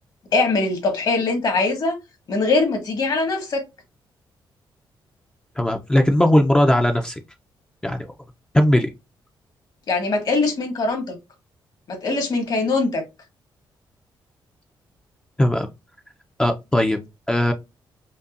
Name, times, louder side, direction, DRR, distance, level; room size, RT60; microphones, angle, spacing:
voice 1, 0.3-2.0 2.3-3.6 9.9-11.1 11.9-13.0, left 3 dB, 55° left, 1.7 m, -22 dB
voice 2, 5.6-7.2 7.8-8.1 8.5-8.9 15.4-15.7 16.4-17.0 17.3-17.5, left 1 dB, 10° left, 0.5 m, -18 dB
5.2 x 2.3 x 2.5 m
cardioid pair, 110°, 9 cm